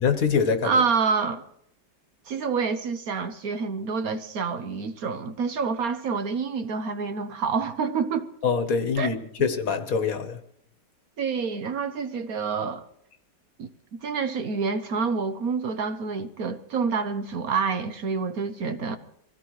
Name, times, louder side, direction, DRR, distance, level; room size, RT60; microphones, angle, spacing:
voice 1, 0.0-0.8 8.4-10.4, left 6 dB, 55° left, 1.5 m, -24 dB
voice 2, 0.6-1.4 2.3-8.3 9.0-9.1 11.2-12.8 13.6-19.0, right 5 dB, 60° right, 1.2 m, -27 dB
24.0 x 16.5 x 3.2 m
omnidirectional pair, 1.9 m